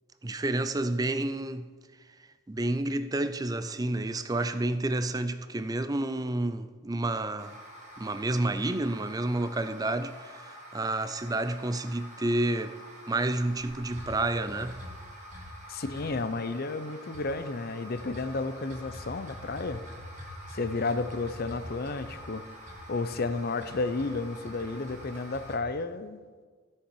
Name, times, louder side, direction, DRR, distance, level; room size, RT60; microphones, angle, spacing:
voice 1, 0.2-1.7 2.5-7.6 8.0-12.8 13.1-14.8, right 2 dB, 20° right, 0.4 m, -30 dB
sound 1, 7.4-25.6, equal, 35° right, 2.1 m, -45 dB
voice 2, 15.7-19.9 20.5-22.4 22.9-26.2, left 3 dB, 50° left, 0.6 m, -32 dB
16.0 x 6.7 x 4.7 m
head